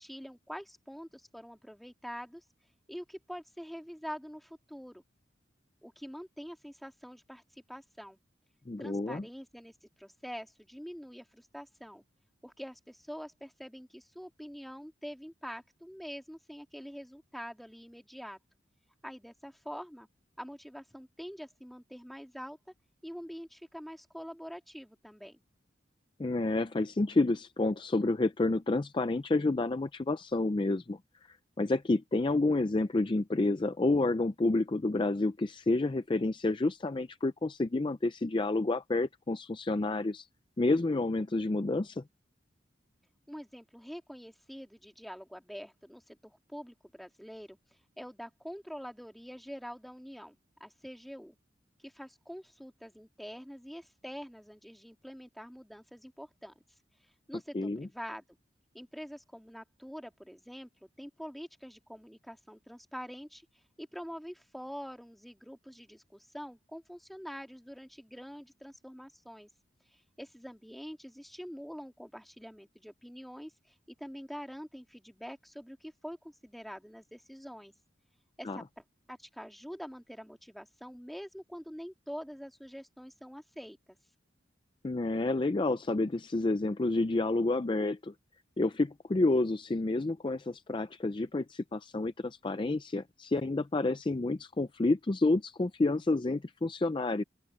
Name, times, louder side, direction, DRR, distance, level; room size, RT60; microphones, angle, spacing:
voice 1, 0.0-2.4 2.9-5.0 5.8-7.4 7.7-8.2 8.8-12.0 12.4-18.4 19.0-20.1 20.4-22.6 23.0-25.4 43.3-47.6 48.0-51.4 51.8-56.5 57.3-58.2 58.7-60.7 61.0-63.5 63.8-69.5 70.2-77.7 78.4-78.6 79.1-83.8, equal, ahead, 1.9 m, -45 dB
voice 2, 8.7-9.2 26.2-31.0 31.3-40.3 40.6-42.0 57.5-57.9 78.4-78.6 84.8-88.1 88.6-97.2, left 2 dB, 25° left, 0.4 m, -29 dB
open air
head